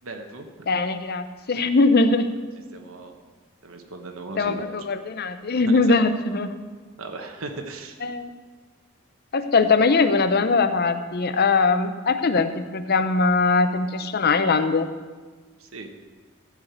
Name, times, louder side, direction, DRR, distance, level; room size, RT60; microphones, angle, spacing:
voice 1, 0.0-0.5 2.7-3.1 3.6-4.7 5.6-5.8 7.0-8.0 15.6-15.9, right 3 dB, 75° right, 4 dB, 1.1 m, -37 dB
voice 2, 0.7-2.3 4.4-6.6 8.0-8.3 9.3-14.9, left 3 dB, 50° left, 10 dB, 0.7 m, -21 dB
14.0 x 5.0 x 8.1 m, 1.4 s
head